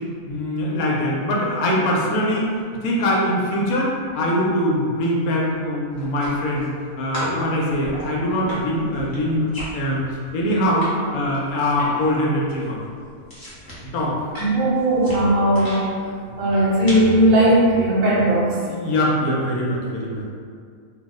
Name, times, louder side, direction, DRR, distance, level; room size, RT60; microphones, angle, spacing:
voice 1, 0.3-2.5 2.8-6.7 7.0-9.5 9.7-10.0 10.3-10.9 11.1-12.8 13.8-14.1 16.2-16.3 18.6-20.2, left 1 dB, 75° left, -4 dB, 1.1 m, -22 dB
sound 1, 5.9-6.8 7.1-10.9 11.2-12.1 12.4-15.8 16.5-17.2, equal, 25° left, 0.5 m, -35 dB
voice 2, 14.4-16.0 16.4-18.6, right 1 dB, 65° right, -7 dB, 1.1 m, -17 dB
2.7 x 2.0 x 3.5 m, 2.2 s
omnidirectional pair, 1.5 m